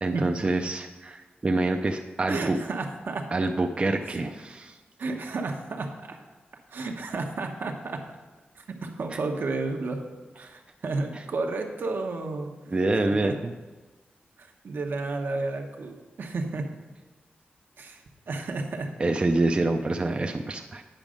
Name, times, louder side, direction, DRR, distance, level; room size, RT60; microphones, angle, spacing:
voice 1, 0.0-2.6 3.3-4.3 12.7-13.5 19.0-20.8, right 2 dB, 30° right, 4 dB, 0.4 m, -26 dB
voice 2, 2.3-3.3 4.1-4.2 5.0-6.2 6.7-8.0 8.6-10.0 10.4-12.6 13.2-13.3 14.4-16.7 17.8-18.9, right 3 dB, 70° right, 3 dB, 1.0 m, -32 dB
8.9 x 5.2 x 5.0 m, 1.2 s
wide cardioid pair, 105°, 4 cm